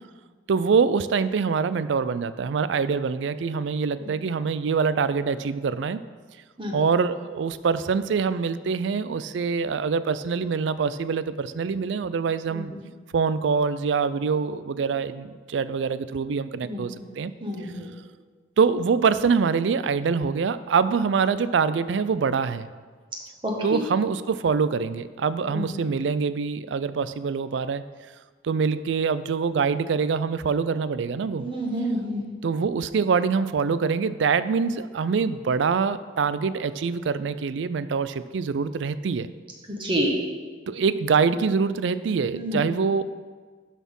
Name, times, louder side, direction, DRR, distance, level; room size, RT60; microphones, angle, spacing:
voice 1, 0.5-6.0 6.7-12.7 13.1-17.3 18.6-22.7 23.6-27.8 28.4-31.5 32.4-39.3 40.7-43.0, right 5 dB, 80° right, 15 dB, 0.4 m, -24 dB
voice 2, 16.6-16.9 17.4-17.9 23.4-23.8 25.5-25.7 31.4-32.2 39.8-40.2 42.3-42.6, equal, 30° right, -1 dB, 1.5 m, -28 dB
12.0 x 4.3 x 5.4 m, 1.5 s
head